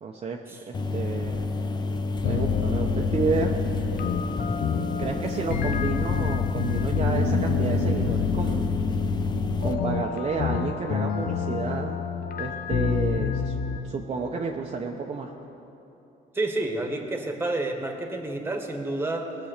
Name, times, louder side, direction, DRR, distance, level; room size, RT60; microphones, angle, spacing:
voice 1, 0.0-0.4 0.7-1.5 2.2-3.5 5.0-8.7 9.6-12.0 12.4-13.6 13.8-15.3, right 4 dB, 35° right, 0 dB, 0.9 m, -30 dB
sound 1, 0.7-9.7, left 3 dB, 25° left, 0.7 m, -30 dB
sound 2, 2.2-13.8, left 6 dB, 60° left, 0.8 m, -27 dB
voice 2, 16.3-19.4, right 2 dB, 15° right, 3 dB, 1.6 m, -29 dB
19.5 x 7.1 x 6.6 m, 3.0 s
cardioid pair, 110°, 17 cm